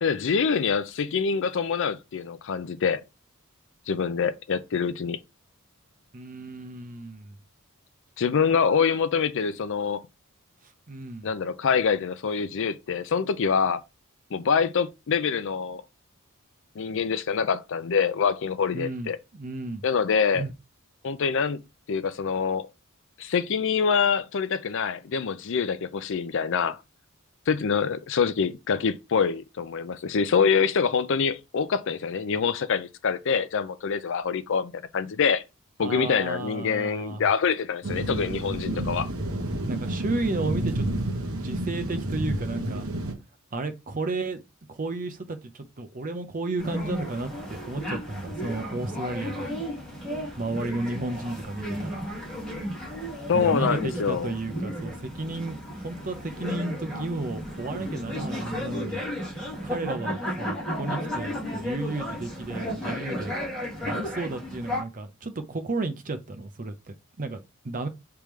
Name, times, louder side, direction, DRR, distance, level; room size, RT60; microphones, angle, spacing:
voice 1, 0.0-3.0 3.9-5.2 8.2-10.0 11.2-13.8 14.3-15.8 16.8-19.2 19.8-20.4 21.0-21.6 21.9-22.7 23.2-26.8 27.5-35.4 35.8-39.1 53.3-54.3, left 6 dB, 60° left, 0.5 m, -25 dB
voice 2, 6.1-7.4 10.9-11.3 18.7-19.8 20.3-20.5 35.8-37.3 39.7-41.0 41.4-42.9 43.5-44.4 44.7-49.5 50.4-52.0 53.3-59.0 59.6-63.4 63.8-67.9, right 2 dB, 40° right, 0.6 m, -33 dB
sound 1, 37.8-43.1, right 1 dB, 65° right, 1.2 m, -30 dB
sound 2, 46.6-64.8, equal, 5° left, 2.1 m, -33 dB
5.0 x 3.5 x 3.1 m
head